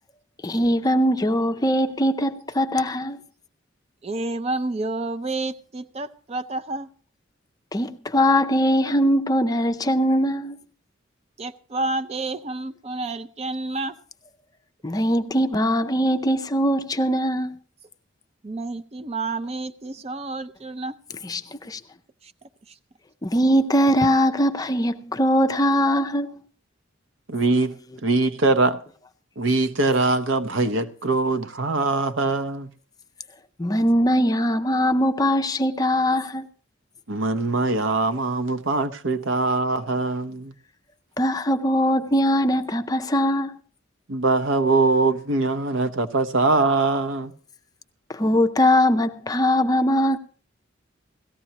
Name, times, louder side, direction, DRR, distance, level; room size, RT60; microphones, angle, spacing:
voice 1, 0.4-3.2 7.7-10.6 14.8-17.5 21.2-21.4 21.7-21.8 23.2-26.4 33.6-36.5 41.2-43.6 48.1-50.2, equal, 20° left, 0.5 m, -21 dB
voice 2, 4.0-6.9 11.4-14.0 18.4-21.0 22.2-22.3 22.7-22.8, right 2 dB, 30° right, 0.5 m, -30 dB
voice 3, 27.3-27.7 28.0-28.8 29.4-32.7 37.1-40.5 44.1-47.3, right 3 dB, 75° right, 0.8 m, -22 dB
17.5 x 14.0 x 2.9 m
head